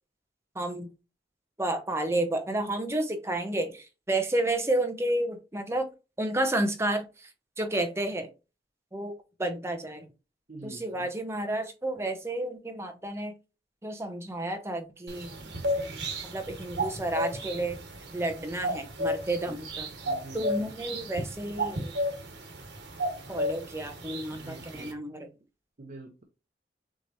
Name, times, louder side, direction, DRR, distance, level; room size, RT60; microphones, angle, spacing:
voice 1, 0.5-0.9 1.6-5.9 6.2-7.3 7.6-8.3 8.9-9.1 9.4-10.1 10.6-13.3 13.8-15.3 16.2-17.8 18.1-19.9 20.3-21.9 23.3-25.3, right 1 dB, 15° right, 0.7 m, -31 dB
voice 2, 10.5-11.1 15.4-15.5 19.5-19.6 20.1-20.7 24.3-25.1 25.8-26.2, right 2 dB, 45° right, 0.7 m, -46 dB
Cuckoo Call, 15.1-24.9, equal, 85° right, 1.4 m, -34 dB
6.4 x 3.1 x 2.6 m
head